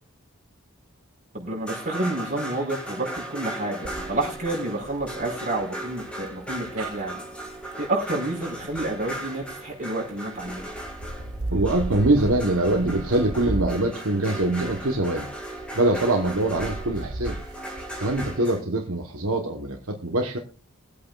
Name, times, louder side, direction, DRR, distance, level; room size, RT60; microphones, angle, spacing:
voice 1, 1.3-7.2 7.8-10.7, right 2 dB, 35° right, -2 dB, 5.0 m, -29 dB
sound 1, 1.4-18.6, right 1 dB, 5° left, 2.1 m, -37 dB
sound 2, 3.8-9.8 10.3-18.3, right 2 dB, 85° right, 1.0 m, -36 dB
voice 2, 11.5-15.3 15.7-17.4 18.0-20.4, right 2 dB, 70° right, 2 dB, 1.3 m, -23 dB
22.5 x 8.5 x 2.5 m, 0.37 s
head